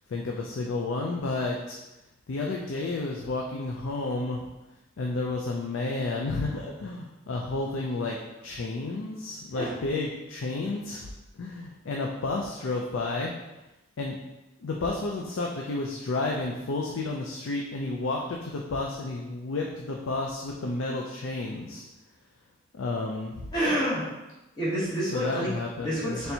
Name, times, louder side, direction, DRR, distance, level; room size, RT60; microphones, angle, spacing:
voice 1, 0.1-1.8 2.3-4.4 5.0-8.2 8.4-11.1 11.4-13.3 14.0-14.2 14.6-21.8 22.7-23.5 25.0-26.2, left 3 dB, 70° left, 0 dB, 0.4 m, -31 dB
voice 2, 23.5-24.1 24.6-25.5 25.8-26.3, equal, 20° left, -8 dB, 1.0 m, -28 dB
4.2 x 3.3 x 2.8 m, 1.0 s
head